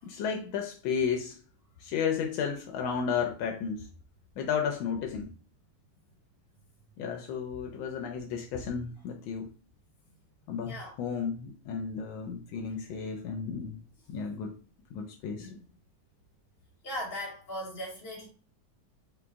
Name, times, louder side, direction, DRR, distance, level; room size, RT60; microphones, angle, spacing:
voice 1, 0.0-1.4 1.8-3.9 4.4-5.3 7.0-9.5 10.5-13.8 14.1-14.6 14.9-15.6, left 6 dB, 85° left, 1.3 m, -33 dB
voice 2, 16.8-18.3, equal, 35° left, 1.2 m, -38 dB
3.8 x 2.9 x 3.4 m
omnidirectional pair, 2.1 m